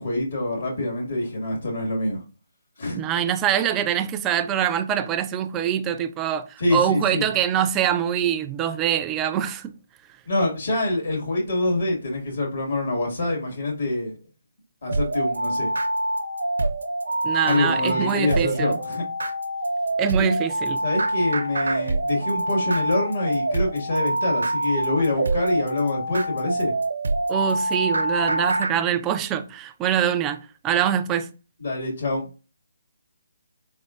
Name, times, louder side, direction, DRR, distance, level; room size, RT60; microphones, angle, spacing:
voice 1, 0.0-2.2 2.8-3.0 6.6-7.3 10.3-14.2 14.8-15.7 17.4-19.0 20.2-20.3 20.8-26.7 31.6-32.2, left 2 dB, 70° left, 1.8 m, -25 dB
voice 2, 2.9-9.8 17.2-18.8 20.0-20.8 27.3-31.3, right 9 dB, 20° right, 0.3 m, -24 dB
sound 1, 14.9-28.7, right 1 dB, 80° right, 0.6 m, -25 dB
3.7 x 3.4 x 2.5 m
figure-of-eight pair, 150°, 0 cm